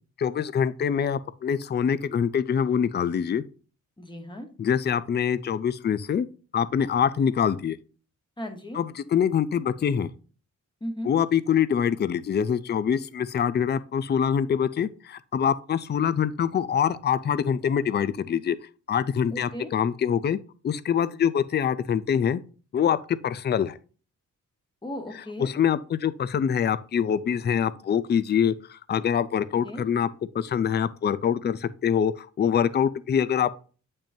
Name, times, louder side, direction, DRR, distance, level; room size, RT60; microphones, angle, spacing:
voice 1, 0.2-3.4 4.6-6.3 6.5-7.8 8.7-10.1 11.0-18.6 18.9-20.4 20.6-22.4 22.7-23.7 25.4-30.1 30.3-33.6, left 8 dB, 35° left, 0.4 m, -24 dB
voice 2, 4.0-4.5 8.4-8.8 10.8-11.1 19.3-19.7 24.8-25.5 29.6-29.8, equal, 15° left, 1.2 m, -36 dB
8.8 x 5.3 x 2.7 m
wide cardioid pair, 160°, 32 cm